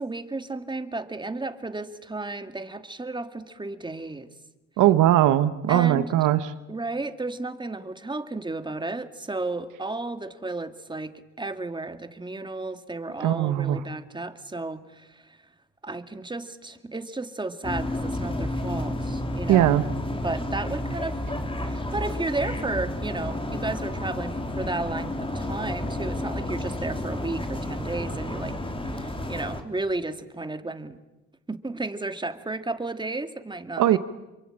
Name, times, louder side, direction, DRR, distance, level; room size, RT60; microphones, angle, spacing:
voice 1, 0.0-4.3 5.7-6.1 6.7-15.4 15.8-19.7 20.1-21.2 21.6-28.5 28.9-31.0 31.5-34.0, right 2 dB, 15° right, 9 dB, 2.1 m, -33 dB
voice 2, 4.8-6.5 13.2-13.8 19.5-19.8 33.8-34.0, right 13 dB, 85° right, 11 dB, 1.1 m, -20 dB
sound 1, 17.6-29.6, left 1 dB, 15° left, 3.7 m, -31 dB
28.0 x 23.0 x 8.8 m, 1.0 s
cardioid pair, 90°, 30 cm